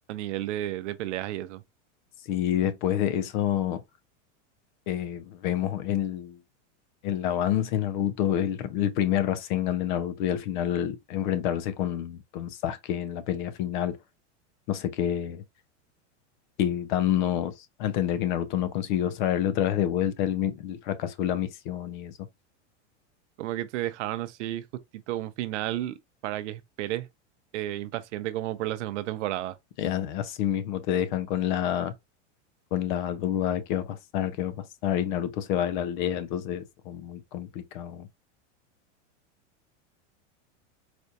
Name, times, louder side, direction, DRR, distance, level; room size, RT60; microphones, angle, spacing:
voice 1, 0.1-1.6 23.4-24.7 25.1-26.0 26.2-27.1 27.5-29.6, right 14 dB, 70° right, 0.6 m, -32 dB
voice 2, 2.3-3.8 4.9-6.4 7.0-14.0 14.7-15.4 16.6-17.5 17.8-22.1 29.8-31.9 32.7-34.5 34.8-38.1, left 11 dB, 40° left, 0.4 m, -28 dB
4.2 x 2.2 x 2.7 m
supercardioid pair, 160°, 37 cm